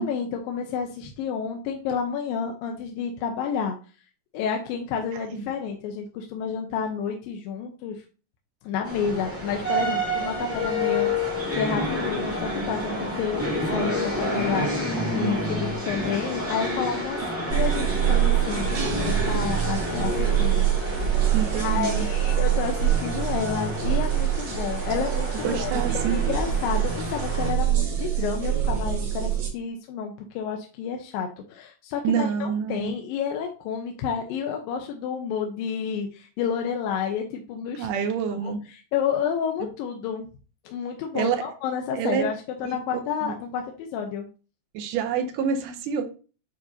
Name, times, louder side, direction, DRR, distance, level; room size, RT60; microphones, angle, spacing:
voice 1, 0.0-3.8 4.3-8.0 8.6-17.2 17.5-21.3 21.6-37.9 38.4-40.3 40.7-42.3 42.6-44.3, left 7 dB, 80° left, 2 dB, 2.5 m, -30 dB
sound 1, 8.8-27.5, left 1 dB, 10° right, 0.6 m, -29 dB
sound 2, 17.5-29.5, right 11 dB, 55° right, 3.0 m, -25 dB
voice 2, 21.3-22.1 25.4-26.2 32.0-32.9 37.7-38.6 41.1-41.5 41.9-42.3 42.6-43.4 44.7-46.0, right 7 dB, 75° right, 7 dB, 2.2 m, -27 dB
9.0 x 4.3 x 2.7 m, 0.36 s
omnidirectional pair, 4.1 m